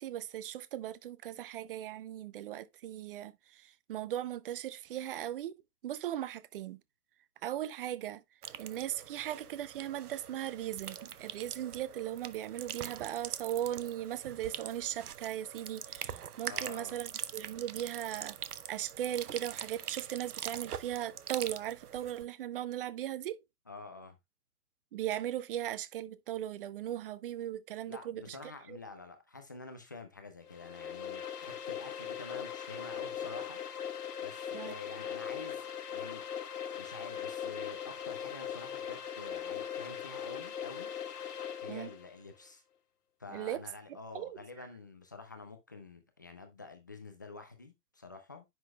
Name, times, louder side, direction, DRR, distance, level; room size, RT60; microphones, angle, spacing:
voice 1, 0.0-5.5 5.8-6.8 7.4-8.2 8.6-18.4 18.7-23.4 24.9-28.4 28.7-28.8 34.5-34.7 41.7-41.9 43.3-43.6 43.9-44.7, right 12 dB, 35° right, 0.7 m, -38 dB
sound 1, 8.4-22.2, right 9 dB, 70° right, 0.9 m, -43 dB
voice 2, 16.5-17.0 23.7-24.2 27.9-33.6 34.2-36.2 36.8-40.9 41.6-42.6 43.2-48.4, left 3 dB, 15° left, 0.4 m, -48 dB
sound 2, 30.4-42.1, left 8 dB, 75° left, 1.2 m, -40 dB
9.8 x 6.1 x 2.2 m
hypercardioid pair, 135°, 47 cm